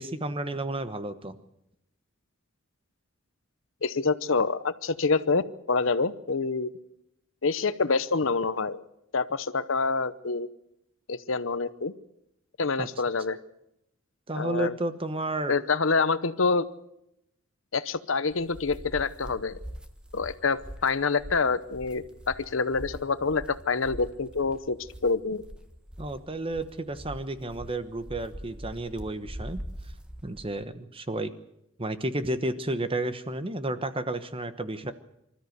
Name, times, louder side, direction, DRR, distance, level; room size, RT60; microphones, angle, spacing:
voice 1, 0.0-1.3 12.8-12.9 14.3-15.5 26.0-29.6 30.2-31.3 31.8-34.9, right 2 dB, 25° right, 11 dB, 1.1 m, -32 dB
voice 2, 3.8-6.7 7.4-8.8 9.1-10.5 11.1-11.9 12.6-13.4 14.3-14.8 15.5-16.6 17.7-19.6 20.1-24.8 25.0-25.4, left 4 dB, 65° left, 14 dB, 0.9 m, -26 dB
sound 1, 18.3-30.6, equal, 5° right, 1.3 m, -43 dB
25.5 x 13.5 x 7.9 m, 0.83 s
head